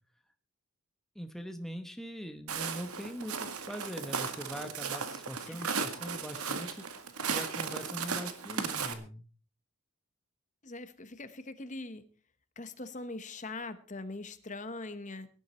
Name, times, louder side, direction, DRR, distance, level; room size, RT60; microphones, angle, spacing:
voice 1, 1.1-6.8 7.3-9.2, equal, ahead, 6 dB, 1.0 m, -42 dB
Walk footsteps, 2.5-8.9, right 5 dB, 85° right, 1.9 m, -36 dB
voice 2, 5.5-5.8 10.6-12.0 12.6-15.3, left 2 dB, 35° left, 12 dB, 1.1 m, -42 dB
18.0 x 11.5 x 4.3 m, 0.38 s
head